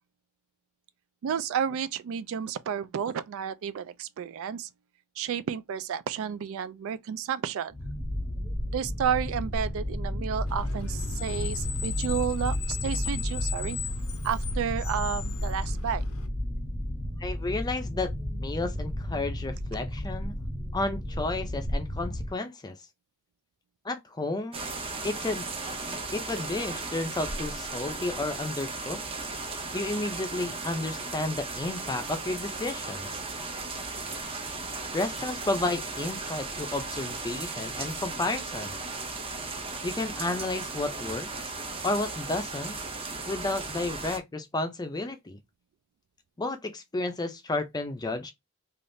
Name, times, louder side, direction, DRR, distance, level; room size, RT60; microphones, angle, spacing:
voice 1, 1.2-4.7 5.2-7.7 8.7-13.8 14.2-16.0, right 8 dB, 65° right, 0.3 m, -31 dB
sound 1, 7.7-22.3, equal, ahead, 0.9 m, -32 dB
Screech, 10.5-16.3, left 9 dB, 70° left, 0.5 m, -39 dB
voice 2, 17.2-18.1 18.4-20.3 20.7-22.8 23.8-24.6 25.0-25.5 26.1-29.0 29.7-33.2 34.9-38.8 39.8-41.5 41.8-42.8 43.3-45.4 46.4-48.3, left 2 dB, 20° left, 0.5 m, -32 dB
sound 2, 24.5-44.2, right 3 dB, 25° right, 0.6 m, -36 dB
3.4 x 2.4 x 2.6 m
head